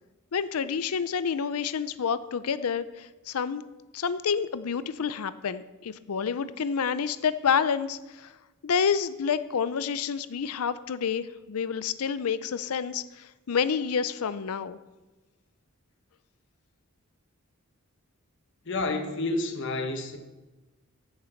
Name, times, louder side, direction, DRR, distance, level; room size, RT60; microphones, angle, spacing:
voice 1, 0.3-3.6 3.9-8.3 8.6-14.8, left 6 dB, 80° left, 0.5 m, -29 dB
voice 2, 18.7-20.2, left 2 dB, 55° left, 1.3 m, -29 dB
15.5 x 6.8 x 4.5 m
head